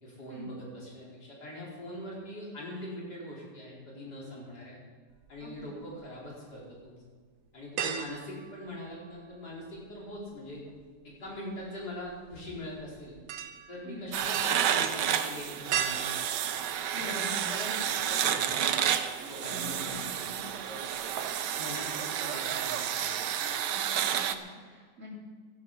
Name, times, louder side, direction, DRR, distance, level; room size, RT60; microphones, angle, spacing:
voice 1, 0.0-4.8 5.3-7.0 7.5-10.6 11.0-13.1 13.7-16.2 16.9-18.6 19.3-20.2 20.7-20.8 21.5-23.2, equal, 70° left, -5 dB, 5.0 m, -42 dB
sound 1, 5.1-6.1 6.6-6.7 7.8-9.5 9.8-17.7 18.1-18.2 19.6-20.2 20.5-20.7 21.0-21.5 21.8-21.9, right 8 dB, 70° right, 1.5 m, -39 dB
voice 2, 5.4-5.7 13.8-14.1 16.9-17.5 19.2-20.5 22.0-22.1 23.3-23.8 24.1-25.1, left 2 dB, 45° right, -4 dB, 4.0 m, -46 dB
sound 2, 14.1-24.3, right 9 dB, 90° right, 1.4 m, -30 dB
15.5 x 12.0 x 5.6 m, 1.5 s
omnidirectional pair, 1.8 m